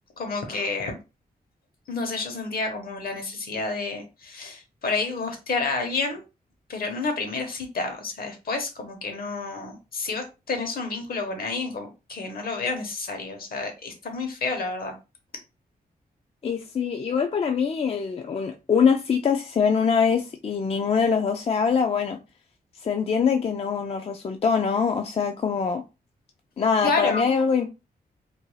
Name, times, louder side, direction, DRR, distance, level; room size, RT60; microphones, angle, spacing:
voice 1, 0.2-1.0 1.9-6.2 6.7-14.9 26.8-27.2, left 3 dB, 65° left, 1.0 m, -29 dB
voice 2, 16.4-22.2 22.8-25.8 26.6-27.7, left 6 dB, 40° left, 0.3 m, -23 dB
2.6 x 2.2 x 3.1 m
cardioid pair, 90°, 16 cm